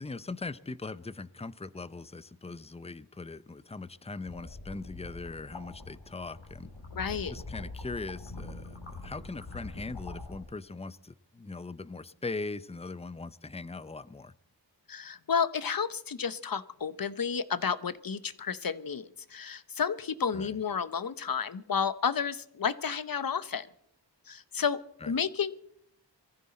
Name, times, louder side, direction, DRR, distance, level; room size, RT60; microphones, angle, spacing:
voice 1, 0.0-6.7 7.3-14.3 20.3-20.6 25.0-25.1, left 3 dB, 15° left, 17 dB, 0.6 m, -40 dB
sound 1, 4.2-10.4, left 2 dB, 90° left, 3.2 m, -44 dB
voice 2, 7.0-7.3 14.9-23.7 24.3-24.8 25.1-25.5, left 6 dB, 50° left, 15 dB, 0.8 m, -31 dB
22.5 x 14.5 x 4.3 m, 0.72 s
wide cardioid pair, 50°, 44 cm